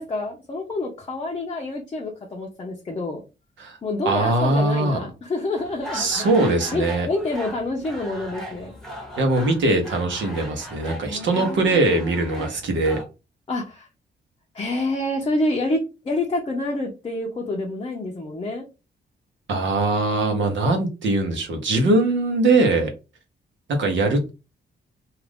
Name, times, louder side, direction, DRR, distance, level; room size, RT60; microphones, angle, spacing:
voice 1, 0.0-3.2 3.8-8.7 11.0-11.8 12.4-12.5 13.5-13.9 14.5-15.8 16.0-18.6, left 2 dB, 25° left, 0 dB, 0.6 m, -28 dB
voice 2, 4.0-5.0 5.9-7.1 9.2-13.0 19.5-22.9 23.7-24.3, right 2 dB, 80° right, 5 dB, 0.9 m, -21 dB
sound 1, 5.5-13.0, equal, ahead, 0.9 m, -38 dB
2.4 x 2.4 x 3.4 m, 0.29 s
cardioid pair, 110°, 19 cm